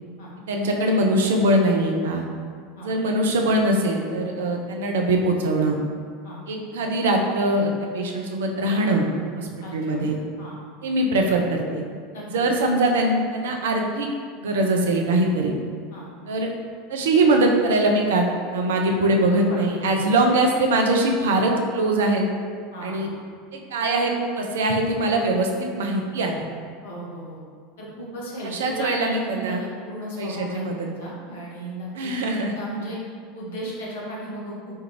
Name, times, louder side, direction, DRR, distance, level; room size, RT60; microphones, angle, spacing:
voice 1, 0.5-2.2 2.8-5.8 6.5-9.1 9.4-10.2 10.8-11.8 12.3-14.1 14.4-15.5 16.3-16.5 16.9-18.3 18.5-22.2 22.8-23.1 23.5-26.5 28.4-29.6 30.2-30.9 31.9-32.5, right 1 dB, 65° right, 2 dB, 0.4 m, -22 dB
voice 2, 9.6-10.0 10.4-10.6 12.1-12.2 15.9-16.1 19.5-20.1 22.7-23.0 26.8-27.4 27.8-33.0 33.3-34.8, right 1 dB, 65° left, -5 dB, 0.9 m, -35 dB
4.4 x 2.4 x 3.0 m, 2.1 s
figure-of-eight pair, 75°, 0 cm